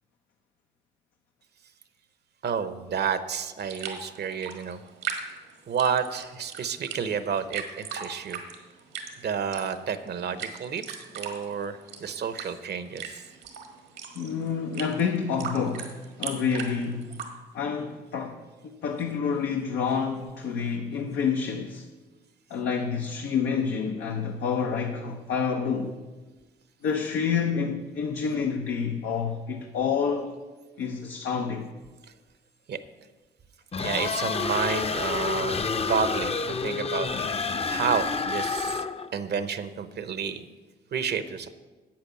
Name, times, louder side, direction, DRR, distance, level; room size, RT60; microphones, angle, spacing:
voice 1, 2.4-4.8 5.7-8.4 9.2-13.2 32.7-32.8 33.8-36.3 36.6-37.1 37.7-38.8 39.1-40.4 40.9-41.5, right 6 dB, 60° right, 0.8 m, -30 dB
sound 1, 3.6-17.2, right 7 dB, 85° right, 1.5 m, -39 dB
voice 2, 14.1-17.1 17.5-21.8 22.5-25.9 26.8-30.3 30.8-31.7, left 6 dB, 80° left, 0.8 m, -28 dB
sound 2, 33.7-39.1, left 4 dB, 30° left, 0.7 m, -29 dB
8.7 x 8.1 x 5.6 m
hypercardioid pair, 45°, 19 cm